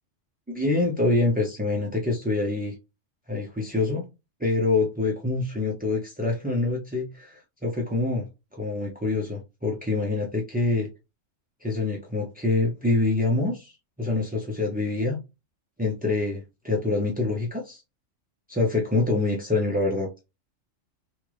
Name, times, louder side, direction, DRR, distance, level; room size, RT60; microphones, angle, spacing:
voice 1, 0.5-2.7 3.3-4.1 4.4-8.3 8.5-10.9 11.6-15.2 15.8-17.8 18.5-20.1, left 3 dB, 15° right, 0.3 m, -26 dB
3.2 x 2.4 x 3.0 m
omnidirectional pair, 1.3 m